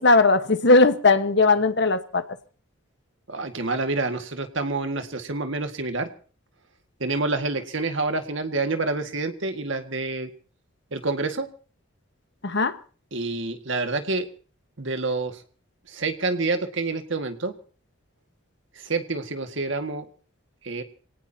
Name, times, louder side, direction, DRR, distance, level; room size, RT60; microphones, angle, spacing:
voice 1, 0.0-2.2 12.4-12.7, left 3 dB, 55° left, 10 dB, 1.3 m, -18 dB
voice 2, 3.3-6.1 7.0-10.3 10.9-11.5 13.1-14.3 14.8-15.4 15.9-17.5 18.8-20.1 20.6-20.8, right 3 dB, 60° right, 7 dB, 1.8 m, -27 dB
26.0 x 18.0 x 2.8 m, 0.40 s
head